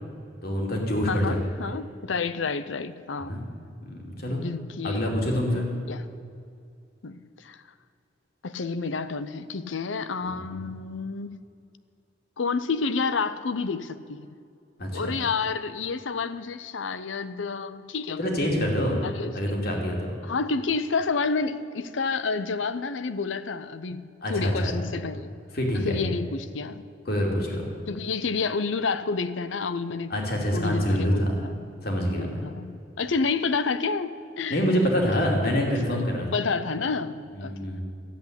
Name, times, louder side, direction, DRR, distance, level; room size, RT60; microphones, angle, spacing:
voice 1, 0.4-1.4 3.2-3.5 3.8-4.4 4.8-5.7 10.3-10.7 14.8-15.1 18.2-19.0 19.3-20.2 24.2-24.9 25.5-26.0 27.1-27.6 30.1-31.3 31.8-32.4 34.5-36.3 37.3-37.8, equal, 55° left, 0 dB, 2.7 m, -26 dB
voice 2, 1.1-3.3 4.3-5.1 5.5-6.0 7.0-7.6 8.4-11.4 12.4-14.3 14.9-18.2 19.0-19.6 20.2-25.3 25.7-26.8 27.9-30.1 30.5-31.7 32.2-34.6 35.1-36.0 36.3-37.8, left 4 dB, 85° left, 12 dB, 0.7 m, -30 dB
13.0 x 8.2 x 9.7 m, 2.4 s
head